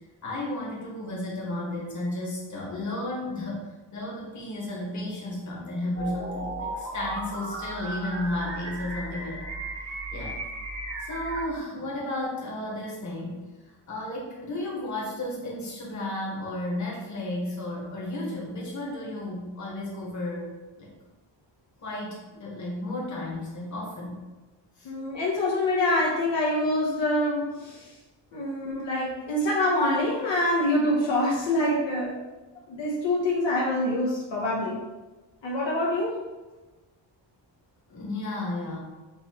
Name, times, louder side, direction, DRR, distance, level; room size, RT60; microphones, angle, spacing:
voice 1, 0.2-3.7 3.9-9.5 9.8-10.4 11.0-13.4 13.9-20.5 20.8-20.9 21.8-24.2 24.8-24.9 29.7-29.8 37.9-38.8, left 1 dB, 40° left, -4 dB, 1.4 m, -33 dB
sound 1, 5.9-11.4, right 1 dB, 35° right, 1.0 m, -35 dB
voice 2, 24.8-27.9 28.3-32.1 32.7-34.8 35.4-36.2, left 1 dB, 75° left, -4 dB, 0.9 m, -25 dB
6.6 x 2.7 x 2.9 m, 1.2 s
wide cardioid pair, 170°, 45 cm